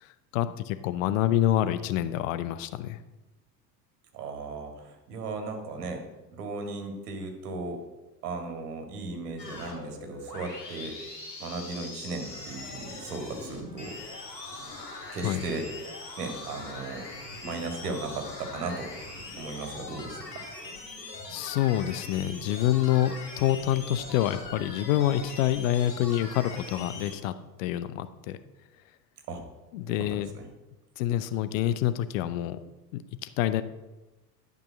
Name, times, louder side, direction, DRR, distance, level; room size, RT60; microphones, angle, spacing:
voice 1, 0.0-3.0 15.2-15.4 21.3-27.3 27.6-28.4 29.7-30.3 31.0-32.6 32.9-33.6, left 12 dB, 50° left, 12 dB, 0.7 m, -27 dB
voice 2, 4.1-6.0 6.3-7.8 8.2-11.0 11.4-14.0 15.1-15.6 16.2-17.1 17.4-18.9 19.4-20.4 29.3-29.4 29.9-30.5, right 3 dB, 65° right, 4 dB, 2.1 m, -36 dB
sound 1, 9.4-27.1, left 2 dB, 80° left, 3.2 m, -41 dB
11.5 x 5.5 x 6.4 m, 1.1 s
figure-of-eight pair, 70°, 50 cm